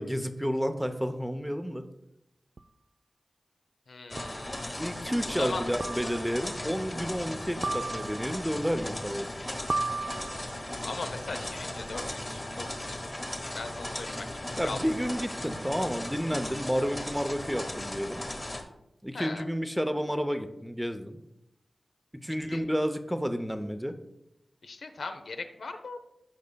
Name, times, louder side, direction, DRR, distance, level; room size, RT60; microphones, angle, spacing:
voice 1, 0.0-1.8 4.8-9.3 14.6-18.2 19.0-21.2 22.2-24.0, equal, ahead, 8 dB, 0.6 m, -31 dB
sound 1, 2.6-2.7 4.2-4.5 5.8-6.4 7.6-8.4 9.7-10.6, right 3 dB, 45° right, 0.3 m, -34 dB
voice 2, 3.9-4.8 5.3-5.7 10.8-13.1 13.5-14.8 19.1-19.5 22.5-22.6 24.6-26.0, left 3 dB, 85° left, 6 dB, 0.7 m, -39 dB
sound 2, 4.1-18.6, left 1 dB, 25° left, 1.3 m, -37 dB
13.5 x 5.3 x 2.3 m, 0.87 s
cardioid pair, 55°, 0 cm